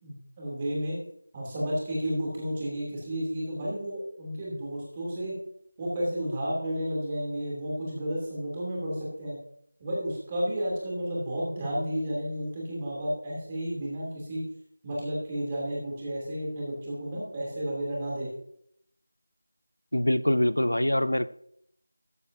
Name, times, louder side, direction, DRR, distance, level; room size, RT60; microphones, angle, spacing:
voice 1, 0.0-1.0 1.3-5.4 5.8-9.4 9.8-14.5 14.8-18.3, equal, 20° right, -5 dB, 3.0 m, -32 dB
voice 2, 19.9-21.3, left 1 dB, 75° left, 17 dB, 0.6 m, -24 dB
13.5 x 8.8 x 2.8 m, 0.70 s
figure-of-eight pair, 170°, 0 cm